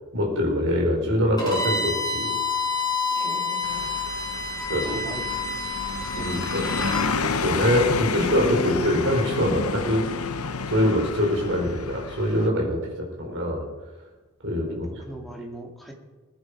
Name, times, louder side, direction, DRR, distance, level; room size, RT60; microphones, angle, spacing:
voice 1, 0.1-2.4 4.7-5.1 6.2-6.9 7.4-10.2 10.7-13.6 14.4-14.9, left 1 dB, 60° right, 0 dB, 4.4 m, -24 dB
Bowed string instrument, 1.4-7.1, left 3 dB, 20° left, 4.5 m, -28 dB
voice 2, 3.1-3.9 4.8-5.3 6.0-6.8 14.7-15.9, equal, ahead, -1 dB, 2.4 m, -41 dB
sound 1, 3.6-12.5, left 4 dB, 85° left, 1.0 m, -30 dB
21.0 x 10.0 x 5.2 m, 1.3 s
head